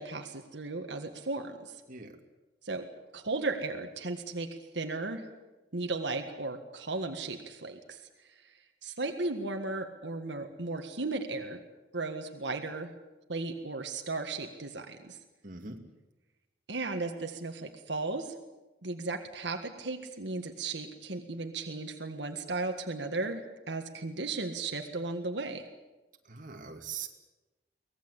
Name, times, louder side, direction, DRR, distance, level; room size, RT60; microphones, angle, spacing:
voice 1, 0.0-1.8 2.6-2.9 3.1-5.3 5.7-8.0 8.4-8.5 8.8-11.6 11.9-12.9 13.3-15.2 16.7-18.3 18.8-23.4 23.7-25.7, right 3 dB, 80° right, 5 dB, 1.7 m, -35 dB
voice 2, 15.4-15.8 26.2-27.1, right 6 dB, 50° right, 3 dB, 2.5 m, -42 dB
24.0 x 18.5 x 8.3 m, 1.1 s
head